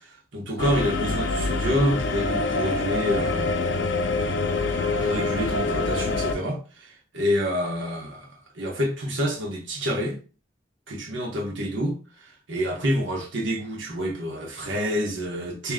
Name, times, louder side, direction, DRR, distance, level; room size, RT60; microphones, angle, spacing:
voice 1, 0.0-3.5 4.7-10.2 10.9-15.7, equal, 90° right, 1.3 m, -28 dB
sound 1, 0.6-6.3, left 3 dB, 75° left, 0.6 m, -25 dB
3.0 x 2.9 x 3.7 m
head